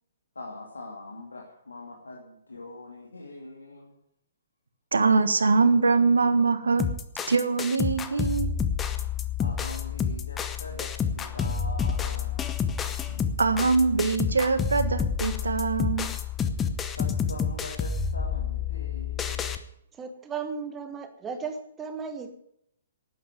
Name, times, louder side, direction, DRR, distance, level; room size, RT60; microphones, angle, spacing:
voice 1, 0.3-4.0 9.4-12.5 16.9-19.5, left 2 dB, 75° left, -1 dB, 2.6 m, -42 dB
voice 2, 4.9-6.9 7.3-8.5 13.4-16.1, right 4 dB, 70° right, 10 dB, 1.5 m, -23 dB
sound 1, 6.8-19.6, left 6 dB, 15° left, 1.0 m, -29 dB
voice 3, 20.0-22.4, right 5 dB, 15° right, 7 dB, 1.4 m, -35 dB
11.5 x 9.6 x 9.1 m, 0.74 s
figure-of-eight pair, 120°, 0 cm